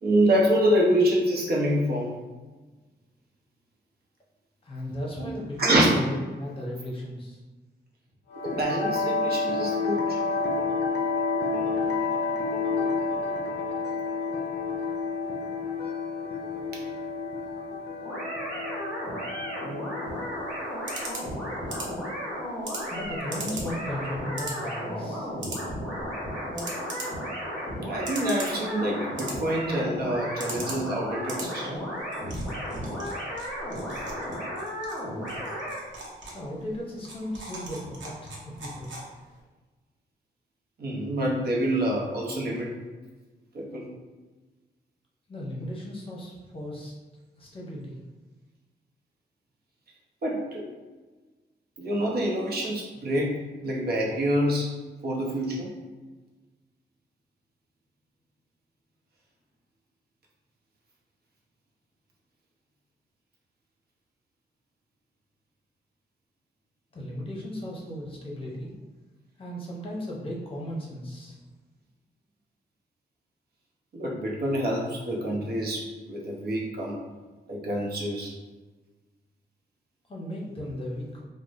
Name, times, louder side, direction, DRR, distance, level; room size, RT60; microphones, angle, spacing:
voice 1, 0.0-2.2 5.2-5.3 5.6-5.9 8.4-10.2 27.8-31.8 40.8-42.7 43.5-43.8 50.2-50.6 51.8-53.3 53.6-54.7 55.0-55.7 73.9-76.9 77.5-78.3, right 1 dB, 60° right, -3 dB, 0.8 m, -26 dB
voice 2, 4.6-7.4 22.9-25.3 36.3-38.9 45.3-46.9 47.4-48.0 66.9-68.7 69.4-71.4 80.1-81.2, left 1 dB, 30° left, -3 dB, 0.7 m, -36 dB
sound 1, 8.3-22.4, left 4 dB, 65° left, 0.4 m, -30 dB
sound 2, 18.0-35.8, equal, 5° left, 1.3 m, -34 dB
sound 3, 20.0-39.4, right 2 dB, 90° right, 0.8 m, -42 dB
4.7 x 2.1 x 2.5 m, 1.2 s
wide cardioid pair, 160°, 19 cm